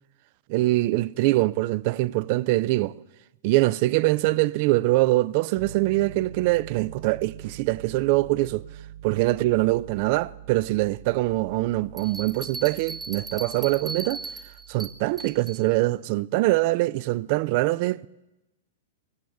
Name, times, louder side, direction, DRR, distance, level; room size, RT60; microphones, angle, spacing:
voice 1, 0.5-2.9 3.4-8.6 9.0-14.2 14.7-18.1, right 19 dB, 50° right, 0.4 m, -23 dB
Piano, 5.6-15.8, right 11 dB, 80° right, 3.1 m, -45 dB
Bell, 12.0-15.6, right 3 dB, 10° right, 1.1 m, -38 dB
17.0 x 16.0 x 3.5 m
hypercardioid pair, 125°, 0 cm